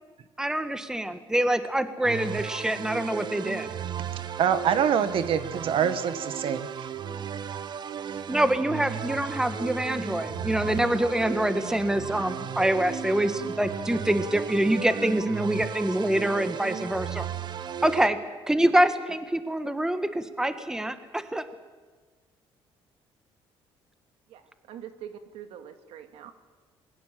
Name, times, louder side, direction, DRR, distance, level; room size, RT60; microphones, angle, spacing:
voice 1, 0.4-3.7 8.3-17.3 17.8-18.2 18.5-21.4, right 1 dB, 5° right, 10 dB, 1.5 m, -25 dB
sound 1, 2.0-18.1, right 8 dB, 50° right, 1.1 m, -35 dB
voice 2, 4.1-6.7, right 8 dB, 65° right, 11 dB, 1.7 m, -25 dB
sound 2, 9.1-14.7, left 1 dB, 25° left, 4.7 m, -45 dB
voice 3, 24.3-26.3, right 9 dB, 85° right, 7 dB, 2.2 m, -44 dB
26.5 x 21.5 x 7.7 m, 1.4 s
cardioid pair, 120°, 10 cm